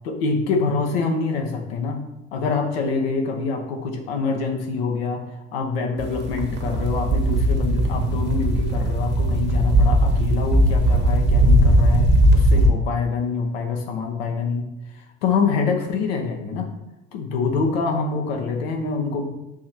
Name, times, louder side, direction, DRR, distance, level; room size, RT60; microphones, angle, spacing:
voice 1, 0.0-2.0 2.3-5.2 5.5-14.7 15.2-16.7 17.1-19.3, left 4 dB, 85° left, 3 dB, 1.0 m, -25 dB
sound 1, 6.0-12.7, right 1 dB, 35° right, 1.2 m, -18 dB
7.2 x 2.9 x 4.4 m, 0.94 s
supercardioid pair, 85°, 30 cm